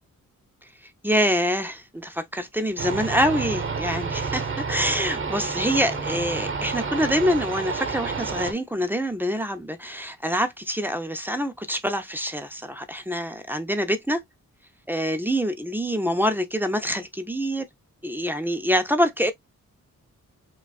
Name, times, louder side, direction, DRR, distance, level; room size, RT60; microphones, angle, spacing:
voice 1, 1.0-14.2 14.9-17.6 18.0-19.3, equal, 5° right, 0.5 m, -25 dB
sound 1, 2.8-8.5, right 5 dB, 40° right, 0.9 m, -29 dB
4.9 x 2.3 x 2.3 m
wide cardioid pair, 135°, 31 cm